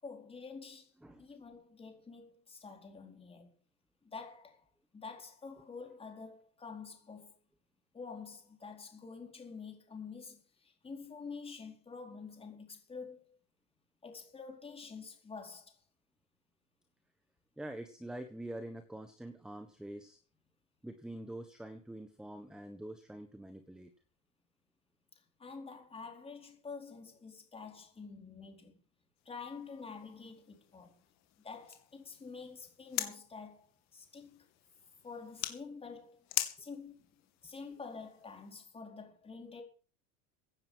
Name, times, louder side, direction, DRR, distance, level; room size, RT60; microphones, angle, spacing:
voice 1, 0.0-0.9 1.2-3.5 4.0-4.7 4.9-7.4 7.9-13.3 14.0-15.8 25.4-28.8 29.2-31.0 31.4-34.5 35.0-36.3 36.6-37.1 37.4-39.6, left 5 dB, 15° left, 4.3 m, -48 dB
voice 2, 17.6-20.2 20.8-23.9, right 1 dB, ahead, 1.3 m, -45 dB
sound 1, 29.2-38.5, left 15 dB, 50° left, 2.6 m, -44 dB
17.0 x 9.9 x 6.4 m
supercardioid pair, 135°, 37 cm